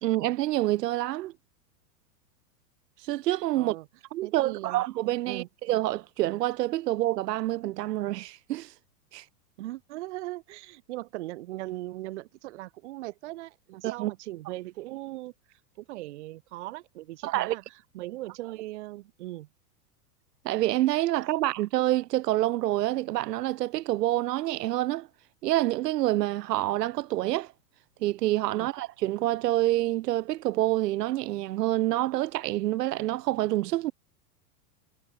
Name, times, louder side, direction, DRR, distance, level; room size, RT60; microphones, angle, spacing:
voice 1, 0.0-1.3 3.0-3.8 4.1-8.7 9.1-9.2 13.8-14.1 17.2-17.6 20.4-25.1 25.4-27.5 28.0-33.9, right 16 dB, 90° right, 0.9 m, -27 dB
voice 2, 3.5-3.9 4.2-4.8 5.2-5.5 9.6-19.5 28.5-28.7, right 17 dB, 50° right, 0.7 m, -39 dB
supercardioid pair, 175°, 47 cm